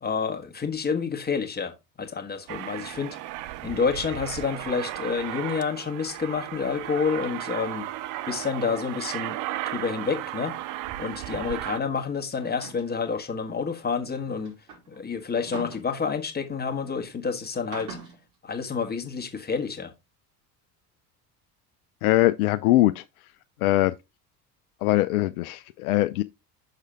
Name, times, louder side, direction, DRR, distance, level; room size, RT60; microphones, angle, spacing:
voice 1, 0.0-3.2 3.6-7.9 8.3-9.4 9.7-10.6 11.0-14.5 14.9-18.0 18.4-19.9, left 5 dB, 20° left, 1.5 m, -29 dB
Aircraft, 2.5-11.8, right 15 dB, 40° right, 0.5 m, -35 dB
sound 1, 12.4-13.0 14.0-16.4 17.5-18.2, right 4 dB, 60° right, 5.0 m, -42 dB
voice 2, 22.0-23.0 23.6-23.9 24.8-26.2, left 16 dB, 60° left, 0.6 m, -22 dB
6.5 x 6.5 x 3.6 m
figure-of-eight pair, 65°, 49 cm